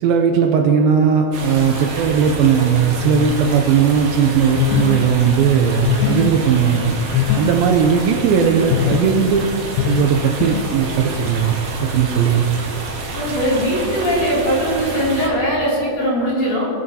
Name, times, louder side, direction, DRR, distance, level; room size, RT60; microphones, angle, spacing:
voice 1, 0.0-6.9 7.4-9.5 9.9-11.6 11.8-12.5, right 7 dB, 80° right, 4 dB, 2.2 m, -17 dB
sound 1, 1.3-15.3, right 2 dB, 60° right, 1.6 m, -29 dB
sound 2, 4.6-5.0 5.8-6.3 7.1-7.5 8.7-9.1 9.8-10.0 10.4-10.6, left 11 dB, 85° left, 2.0 m, -19 dB
voice 2, 13.1-16.7, equal, 45° left, -8 dB, 3.6 m, -20 dB
20.0 x 7.5 x 2.8 m, 2.7 s
omnidirectional pair, 4.5 m